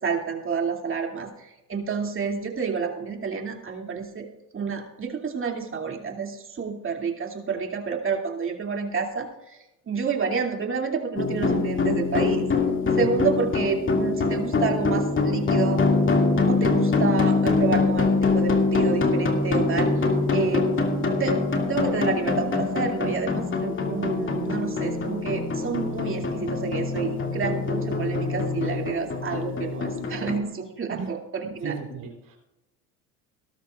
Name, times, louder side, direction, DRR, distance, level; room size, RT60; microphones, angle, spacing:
voice 1, 0.0-4.3 4.5-9.6 9.9-12.5 13.0-15.8 16.5-19.9 20.3-20.6 21.2-21.4 21.7-31.8, right 5 dB, 30° right, 2 dB, 2.5 m, -29 dB
sound 1, 11.2-30.4, left 3 dB, 30° left, 2.2 m, -24 dB
voice 2, 20.3-20.7 30.9-31.1 31.4-32.4, right 5 dB, 50° right, 3 dB, 3.7 m, -37 dB
18.0 x 12.5 x 2.4 m, 0.95 s
hypercardioid pair, 75°, 41 cm